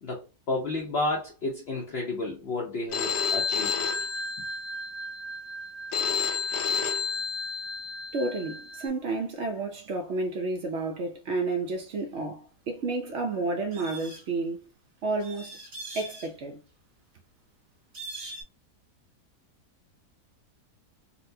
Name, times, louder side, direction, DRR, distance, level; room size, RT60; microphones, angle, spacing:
voice 1, 0.0-3.7, left 2 dB, 55° left, 0.7 m, -31 dB
Telephone, 2.9-8.9, left 5 dB, 90° left, 1.2 m, -31 dB
voice 2, 8.1-14.6 15.0-15.6 15.9-16.6, right 3 dB, 70° right, 0.6 m, -31 dB
sound 1, 13.7-14.2 15.2-16.3 17.9-18.4, right 2 dB, 45° right, 1.9 m, -41 dB
4.0 x 2.2 x 2.6 m
omnidirectional pair, 1.8 m